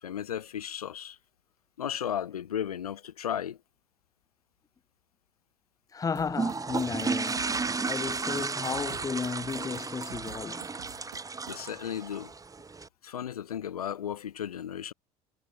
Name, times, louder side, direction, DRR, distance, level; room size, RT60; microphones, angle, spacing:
voice 1, 0.0-1.2 1.8-3.6 11.4-12.3 13.0-14.9, left 9 dB, 75° left, 1.3 m, -35 dB
voice 2, 5.9-10.7, left 5 dB, 20° left, 0.9 m, -34 dB
sound 1, 6.2-11.6, right 22 dB, 65° right, 2.0 m, -49 dB
sound 2, 6.3-12.9, right 4 dB, 20° right, 1.9 m, -33 dB
figure-of-eight pair, 60°, 19 cm